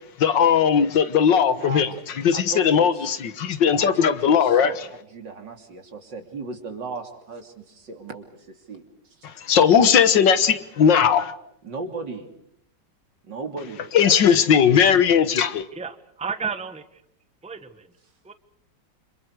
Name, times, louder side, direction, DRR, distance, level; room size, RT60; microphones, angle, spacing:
voice 1, 0.2-1.9 2.2-4.7 9.4-11.3 13.9-15.7, left 7 dB, 80° left, 2.0 m, -18 dB
voice 2, 1.5-2.0 2.3-3.1 3.8-8.8 9.8-9.9 11.0-11.2 11.6-12.3 13.2-13.9, right 3 dB, 75° right, 3.7 m, -36 dB
voice 3, 15.7-17.0 17.4-17.9 18.2-18.3, right 5 dB, 5° right, 1.0 m, -32 dB
29.5 x 27.5 x 4.9 m
omnidirectional pair, 1.9 m